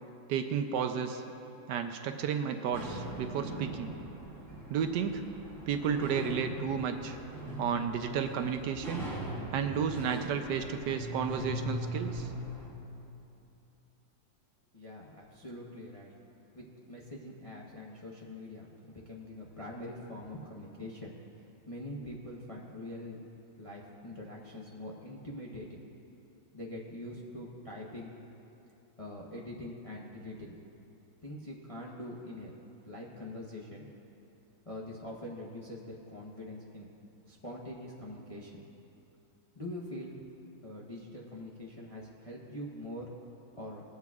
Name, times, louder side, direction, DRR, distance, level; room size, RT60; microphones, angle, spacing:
voice 1, 0.3-1.2 1.7-3.9 4.7-5.2 5.7-7.2 7.6-9.1 9.5-12.3, right 7 dB, 75° right, 7 dB, 1.1 m, -32 dB
sound 1, 2.7-12.7, equal, ahead, 1.8 m, -40 dB
voice 2, 14.7-16.1 16.5-23.2 23.6-25.8 26.5-28.1 29.0-30.6 31.2-32.5 32.8-33.9 34.6-36.9 37.3-38.6 39.5-40.2 40.6-43.1 43.6-43.8, left 1 dB, 30° left, -4 dB, 0.6 m, -44 dB
21.0 x 8.3 x 2.4 m, 2.8 s
omnidirectional pair, 2.0 m